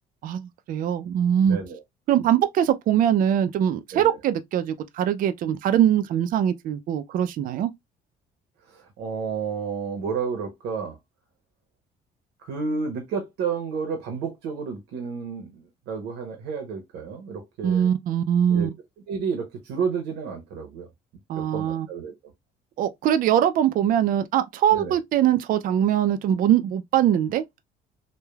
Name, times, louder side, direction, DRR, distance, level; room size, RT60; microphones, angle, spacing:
voice 1, 0.2-1.6 2.1-7.7 17.6-18.7 21.3-21.9 22.8-27.6, right 10 dB, 55° right, 0.4 m, -22 dB
voice 2, 1.4-1.8 3.9-4.2 8.7-11.0 12.4-17.9 18.5-18.7 19.1-20.9 21.4-22.1 24.7-25.0, right 5 dB, 85° right, 0.8 m, -31 dB
3.2 x 2.1 x 2.2 m
cardioid pair, 110°, 17 cm